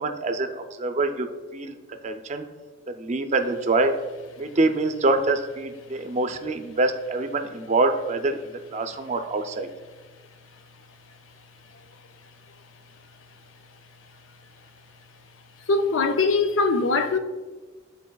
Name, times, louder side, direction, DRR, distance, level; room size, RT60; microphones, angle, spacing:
voice 1, 0.0-2.5 2.9-4.0 4.4-8.4 8.7-9.7, right 2 dB, 35° right, 0.5 m, -25 dB
voice 2, 15.7-17.2, left 3 dB, 80° left, 0.5 m, -21 dB
10.5 x 4.1 x 2.3 m
head